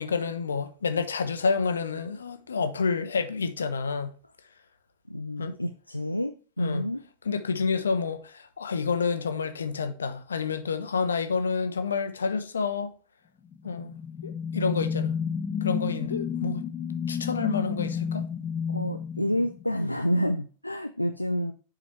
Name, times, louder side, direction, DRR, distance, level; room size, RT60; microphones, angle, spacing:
voice 1, 0.0-4.2 5.4-5.5 6.6-6.9 7.2-12.9 13.6-13.9 14.2-15.2 15.6-16.6 17.1-18.2, left 5 dB, 70° left, 0.8 m, -29 dB
voice 2, 5.1-7.0 18.7-21.5, equal, 85° left, 0.4 m, -29 dB
sound 1, 13.5-20.0, left 7 dB, 25° left, 0.5 m, -31 dB
7.1 x 4.9 x 3.2 m
figure-of-eight pair, 90°, 0 cm